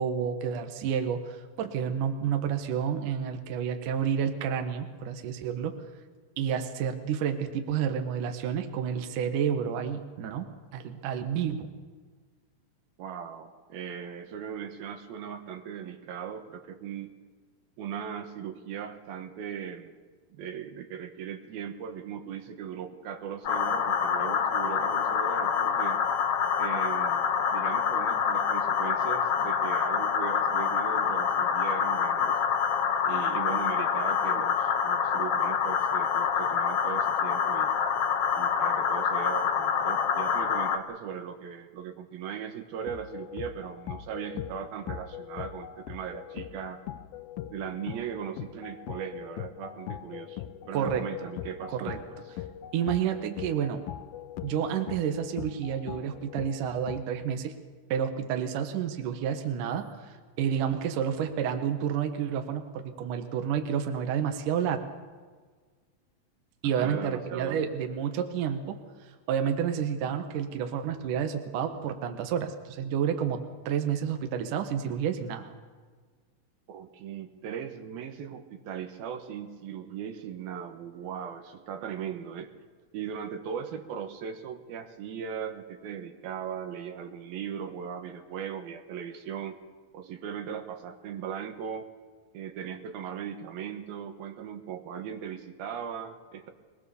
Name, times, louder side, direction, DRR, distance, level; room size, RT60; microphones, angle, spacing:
voice 1, 0.0-5.8 6.4-11.7 50.7-51.1 51.7-52.0 52.7-53.8 54.4-57.6 57.9-60.0 60.4-64.8 66.6-73.4 73.7-75.5, right 8 dB, 65° right, 6 dB, 2.7 m, -30 dB
voice 2, 13.0-17.1 17.8-19.9 20.3-26.0 26.6-32.4 33.0-37.7 38.3-46.8 47.5-52.2 66.8-67.7 76.7-82.5 82.9-89.6 89.9-91.9 92.3-96.5, right 8 dB, 80° right, 6 dB, 3.1 m, -38 dB
sound 1, 23.4-40.8, left 7 dB, 60° left, 1.6 m, -26 dB
sound 2, 42.9-57.0, left 11 dB, 80° left, 2.5 m, -41 dB
23.0 x 19.5 x 7.0 m, 1.5 s
omnidirectional pair, 4.3 m